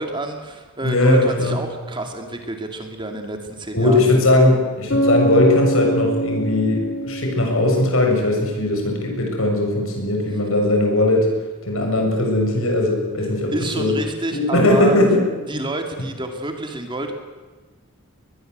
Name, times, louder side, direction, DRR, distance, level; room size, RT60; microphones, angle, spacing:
voice 1, 0.0-4.1 13.5-15.0 15.5-17.1, right 1 dB, 20° right, 4 dB, 2.6 m, -28 dB
voice 2, 0.8-1.6 3.7-11.3 11.6-13.9 14.3-15.2, left 1 dB, 70° left, 2 dB, 6.8 m, -19 dB
Bass guitar, 4.9-8.5, right 1 dB, 55° left, 3.0 m, -24 dB
23.0 x 21.0 x 8.1 m, 1.3 s
head